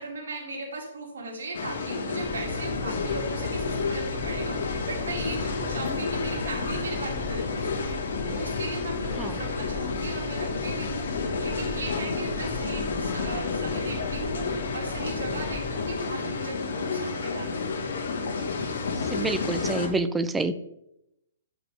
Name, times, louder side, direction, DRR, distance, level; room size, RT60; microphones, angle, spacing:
voice 1, 0.0-17.7, right 2 dB, 90° right, -1 dB, 2.8 m, -37 dB
sound 1, 1.5-19.9, left 4 dB, 70° left, 1.5 m, -31 dB
sound 2, 2.2-15.9, left 3 dB, 25° left, 1.1 m, -37 dB
voice 2, 19.1-20.5, right 3 dB, 5° right, 11 dB, 0.4 m, -27 dB
11.5 x 5.0 x 3.4 m, 0.82 s
hypercardioid pair, 160°, 0 cm